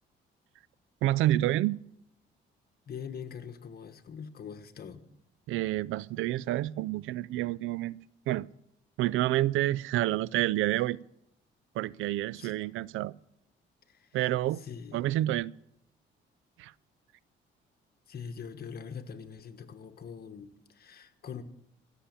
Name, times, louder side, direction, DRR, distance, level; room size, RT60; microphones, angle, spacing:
voice 1, 1.0-1.8 5.5-8.0 8.3-8.5 9.0-11.0 11.8-13.1 14.1-14.6 14.9-15.5 16.6-16.7, right 15 dB, 85° right, 0.4 m, -28 dB
voice 2, 2.9-5.0 12.3-12.6 13.9-14.2 14.6-15.1 18.1-21.4, left 7 dB, 50° left, 1.4 m, -43 dB
16.0 x 7.1 x 8.8 m
cardioid pair, 90°, 20 cm